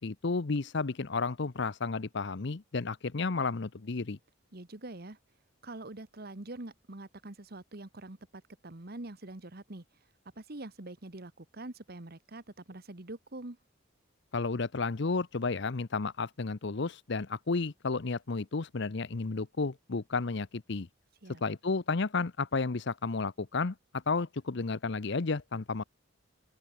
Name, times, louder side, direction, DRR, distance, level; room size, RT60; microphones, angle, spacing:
voice 1, 0.0-4.2 14.3-20.9 21.4-25.8, left 4 dB, 60° left, 0.8 m, -32 dB
voice 2, 4.5-5.2 5.6-9.8 10.3-13.6 21.2-21.4, right 2 dB, 55° right, 1.6 m, -44 dB
open air
head